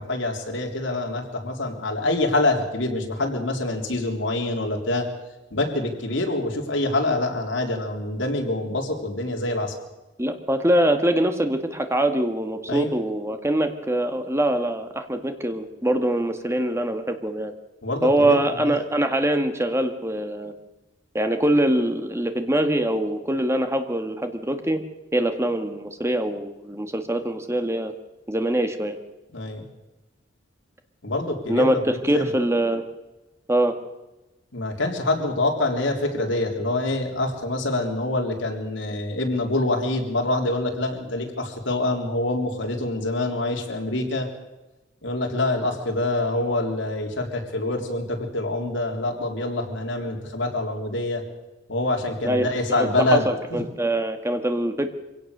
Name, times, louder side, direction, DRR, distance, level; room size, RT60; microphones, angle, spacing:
voice 1, 0.0-5.1 5.5-9.7 12.7-12.9 17.8-18.7 29.3-29.7 31.0-32.3 34.5-44.3 45.0-51.2 51.7-53.3, left 2 dB, 75° left, 2 dB, 3.6 m, -26 dB
voice 2, 10.2-17.5 18.0-20.5 21.1-24.8 25.1-27.9 28.3-29.0 31.5-31.8 32.0-32.8 33.5-33.7 52.2-52.5 52.8-54.9, right 1 dB, 15° right, 7 dB, 1.7 m, -23 dB
24.5 x 17.0 x 6.7 m, 1.0 s
head